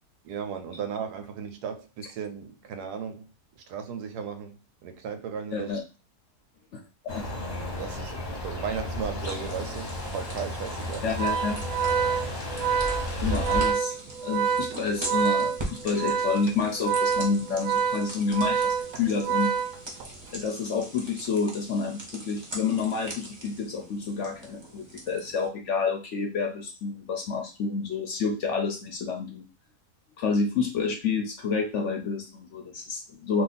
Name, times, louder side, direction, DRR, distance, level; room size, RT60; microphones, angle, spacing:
voice 1, 0.2-3.3 3.7-5.8 7.8-11.0 13.3-13.5, right 7 dB, 85° right, 1.2 m, -36 dB
voice 2, 5.5-5.8 6.7-7.2 11.0-11.5 13.2-13.9 14.2-19.5 20.3-29.4 30.2-33.4, left 5 dB, 60° left, 0.8 m, -29 dB
sound 1, 7.1-13.7, left 1 dB, 35° left, 0.8 m, -33 dB
sound 2, 9.2-25.5, right 1 dB, 25° right, 0.6 m, -42 dB
Organ, 11.1-20.2, right 7 dB, 70° right, 0.9 m, -27 dB
2.6 x 2.5 x 3.9 m
omnidirectional pair, 1.7 m